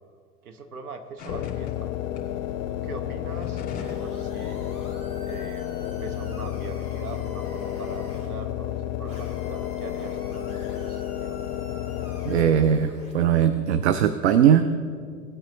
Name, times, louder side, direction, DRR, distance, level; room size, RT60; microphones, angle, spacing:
voice 1, 0.4-1.9 2.7-4.6 5.2-11.4, right 4 dB, 65° right, 7 dB, 1.2 m, -41 dB
sound 1, 1.2-1.7 2.1-2.2 3.1-4.1 4.4-4.6, left 5 dB, 20° left, 2.3 m, -40 dB
sound 2, 1.3-13.0, left 11 dB, 55° left, 0.6 m, -31 dB
sound 3, 3.7-8.3 9.1-13.3, left 1 dB, 15° right, 2.2 m, -49 dB
voice 2, 12.2-14.8, right 8 dB, 45° right, 11 dB, 0.5 m, -20 dB
17.5 x 8.8 x 2.9 m, 2.3 s
figure-of-eight pair, 95°, 47 cm